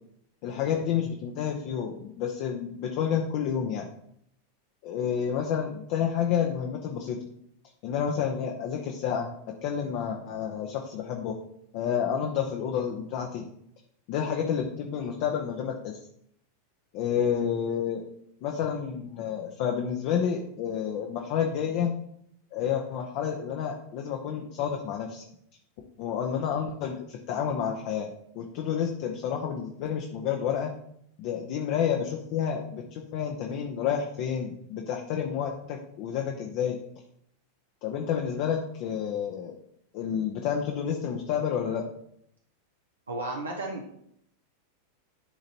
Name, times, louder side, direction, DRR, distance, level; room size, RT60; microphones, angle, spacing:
voice 1, 0.4-3.8 4.8-7.2 7.8-9.3 9.6-11.3 11.7-13.4 14.1-15.9 16.9-18.0 18.4-21.9 22.5-25.2 26.0-28.1 28.3-30.7 31.2-36.8 37.8-39.5 39.9-41.8, left 8 dB, 50° left, 2 dB, 0.8 m, -29 dB
voice 2, 43.1-43.9, right 2 dB, 80° right, 0 dB, 0.9 m, -33 dB
11.0 x 3.9 x 2.9 m, 0.72 s
figure-of-eight pair, 90°, 0 cm